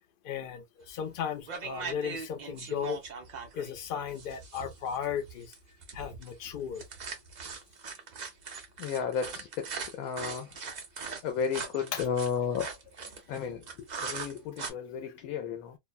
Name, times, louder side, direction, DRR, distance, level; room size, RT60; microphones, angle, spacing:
voice 1, 0.2-3.0 3.5-5.5 5.9-6.8 11.9-12.0, left 8 dB, 65° left, 0.5 m, -35 dB
sound 1, 0.9-1.1 1.5-14.7, right 5 dB, 50° right, 0.5 m, -40 dB
voice 2, 8.8-10.5 11.2-12.7 13.3-13.6 14.0-15.8, left 7 dB, 85° left, 1.0 m, -33 dB
2.6 x 2.1 x 2.3 m
omnidirectional pair, 1.5 m